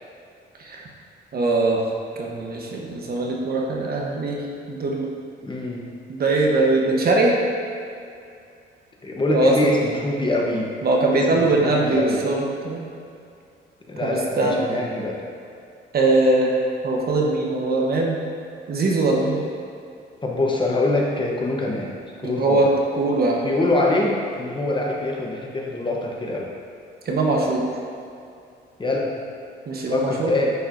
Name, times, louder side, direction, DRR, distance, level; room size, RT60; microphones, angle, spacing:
voice 1, 1.3-1.8 2.2-4.4 4.7-5.1 6.1-7.3 9.3-9.7 10.8-12.8 14.0-14.6 15.9-16.6 16.8-18.2 18.7-19.4 22.2-23.4 27.1-27.6 29.7-30.3, right 2 dB, 50° right, -1 dB, 1.0 m, -21 dB
voice 2, 5.4-5.8 9.0-10.7 11.1-12.2 13.9-15.2 20.2-22.0 22.2-22.7 23.4-26.5 28.8-29.1 29.9-30.5, left 2 dB, 25° left, -1 dB, 0.9 m, -24 dB
9.3 x 4.5 x 2.6 m, 2.5 s
cardioid pair, 90°, 20 cm